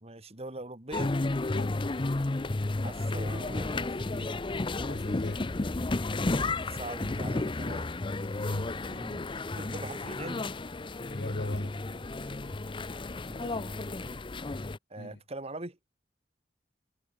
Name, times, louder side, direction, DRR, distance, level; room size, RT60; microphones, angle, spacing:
voice 1, 0.0-1.1 2.8-4.4 6.3-7.9 8.2-8.4 8.8-9.2 9.6-10.4 13.1-14.2 14.9-15.8, right 2 dB, 35° right, 2.9 m, -43 dB
sound 1, 0.9-14.8, left 2 dB, 30° left, 0.6 m, -32 dB
voice 2, 4.9-5.5 8.4-8.8 11.1-11.8 15.0-15.2, left 1 dB, 75° left, 1.7 m, -36 dB
head